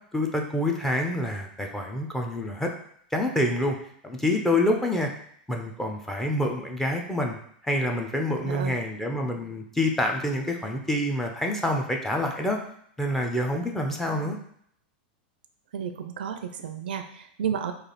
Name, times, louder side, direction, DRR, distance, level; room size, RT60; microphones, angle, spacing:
voice 1, 0.1-2.7 3.1-3.8 4.0-5.1 5.5-7.4 7.6-12.6 13.0-14.4, left 1 dB, 5° left, 1 dB, 0.6 m, -27 dB
voice 2, 8.4-8.8 14.1-14.3 15.7-17.7, right 8 dB, 80° right, 7 dB, 0.4 m, -32 dB
3.2 x 2.5 x 4.0 m, 0.67 s
hypercardioid pair, 120°, 5 cm